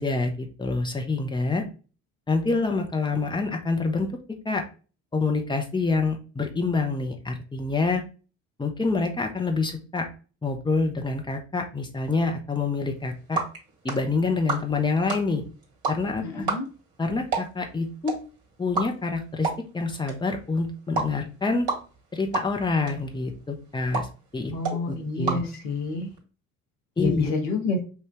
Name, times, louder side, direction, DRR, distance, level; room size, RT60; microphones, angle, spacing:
voice 1, 0.0-1.6 2.3-4.1 4.4-4.6 5.1-8.0 8.6-10.1 10.4-13.4 13.8-15.4 15.9-16.5 17.0-18.2 18.6-19.5 19.7-21.7 22.1-24.1 24.3-25.4 27.0-27.3, left 3 dB, 10° left, 3 dB, 1.0 m, -26 dB
sound 1, 12.9-26.2, right 4 dB, 55° right, 2.0 m, -34 dB
voice 2, 16.2-16.7 24.5-26.1 27.0-27.8, left 3 dB, 60° left, 3 dB, 1.3 m, -28 dB
5.6 x 2.7 x 3.3 m, 0.35 s
figure-of-eight pair, 55°, 41 cm